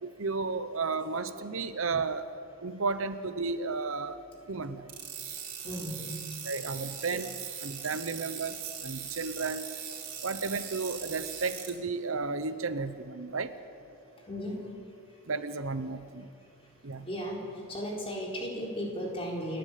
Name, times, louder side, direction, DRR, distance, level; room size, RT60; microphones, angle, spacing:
voice 1, 0.0-2.3 2.6-4.2 4.5-4.9 6.4-9.7 10.2-13.5 15.3-16.3 16.8-17.1, right 4 dB, 65° right, 11 dB, 0.9 m, -33 dB
sound 1, 4.9-11.7, right 8 dB, 40° right, 4.1 m, -40 dB
voice 2, 5.6-6.1 14.3-14.5 17.1-17.4 17.7-19.6, equal, 25° left, -2 dB, 4.1 m, -35 dB
29.0 x 11.5 x 8.4 m, 2.6 s
head